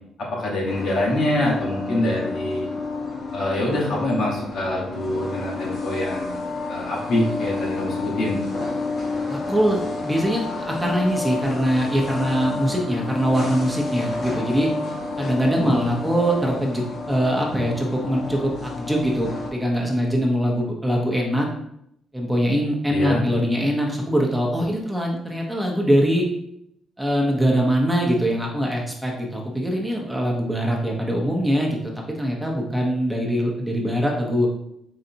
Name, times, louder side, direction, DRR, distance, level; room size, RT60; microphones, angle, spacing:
voice 1, 0.2-2.7 3.3-6.4 6.7-8.4 15.6-15.9 22.9-23.3, left 1 dB, 70° left, -3 dB, 1.3 m, -25 dB
sound 1, 0.7-19.5, left 3 dB, 50° left, 1.1 m, -30 dB
voice 2, 9.3-14.7 15.2-16.8 17.1-21.5 22.1-26.3 27.0-31.8 32.2-34.5, equal, 10° right, -1 dB, 0.8 m, -22 dB
3.9 x 3.2 x 2.8 m, 0.77 s
cardioid pair, 90°, 0 cm